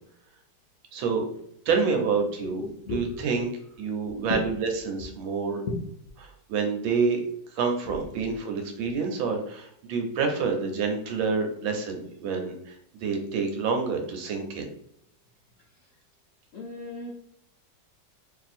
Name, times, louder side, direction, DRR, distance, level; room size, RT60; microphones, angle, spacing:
voice 1, 0.9-1.2 1.7-2.6 2.9-3.5 3.8-5.6 6.2-7.2 7.5-12.7 13.0-14.7, right 5 dB, 85° right, 3 dB, 1.6 m, -28 dB
voice 2, 2.4-3.2 4.0-4.5 5.7-5.8 7.9-8.3 8.8-8.9 16.5-17.1, left 3 dB, 70° left, -3 dB, 0.8 m, -35 dB
3.3 x 2.7 x 4.1 m, 0.70 s
omnidirectional pair, 2.1 m